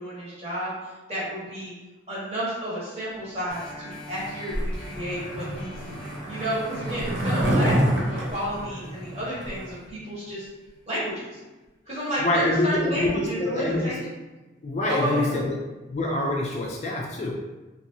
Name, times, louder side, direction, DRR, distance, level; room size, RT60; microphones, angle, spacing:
voice 1, 0.0-1.7 2.1-8.0 8.3-10.5 10.9-11.4 11.9-14.0 14.9-15.4, equal, 35° right, -8 dB, 1.2 m, -31 dB
sound 1, 3.5-10.7 11.2-11.3, equal, 5° left, 0.7 m, -38 dB
Skateboard, 4.2-9.7, right 1 dB, 65° right, 0.7 m, -28 dB
voice 2, 12.2-13.9 14.6-15.6 15.9-17.3, left 1 dB, 35° left, -1 dB, 0.3 m, -25 dB
2.9 x 2.6 x 2.7 m, 1.1 s
head